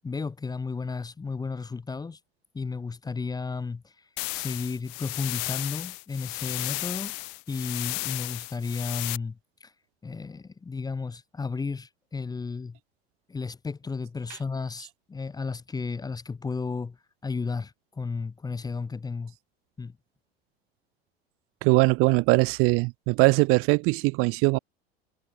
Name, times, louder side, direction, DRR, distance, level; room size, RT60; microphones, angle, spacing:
voice 1, 0.0-2.2 2.5-3.9 4.3-7.1 7.5-9.7 10.0-12.8 13.3-17.0 17.2-19.3 19.8-20.0, left 4 dB, 10° left, 0.8 m, -33 dB
sound 1, 4.2-9.2, left 40 dB or more, 55° left, 2.1 m, -34 dB
voice 2, 21.6-24.6, right 27 dB, 45° right, 0.6 m, -21 dB
figure-of-eight pair, 75°, 31 cm